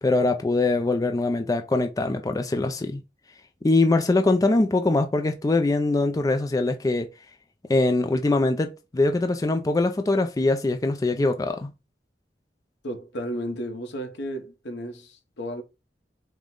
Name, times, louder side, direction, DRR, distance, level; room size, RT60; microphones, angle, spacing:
voice 1, 0.0-3.0 3.6-7.1 7.7-11.7, left 2 dB, 20° left, 0.4 m, -22 dB
voice 2, 12.8-15.6, equal, 90° left, 1.0 m, -33 dB
5.0 x 2.2 x 3.7 m
head